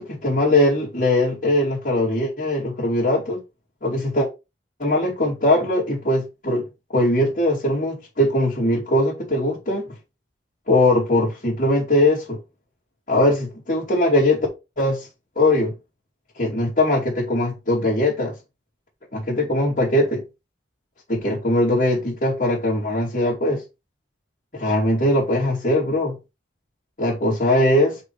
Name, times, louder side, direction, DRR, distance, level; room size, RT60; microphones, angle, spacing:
voice 1, 0.0-3.4 3.8-4.3 4.8-6.6 6.9-9.9 10.7-12.4 13.1-14.5 14.8-15.1 15.4-15.7 16.4-18.4 19.1-20.2 21.1-23.6 24.5-26.2 27.0-28.0, left 1 dB, 45° left, 2.6 m, -20 dB
4.8 x 4.8 x 4.6 m
head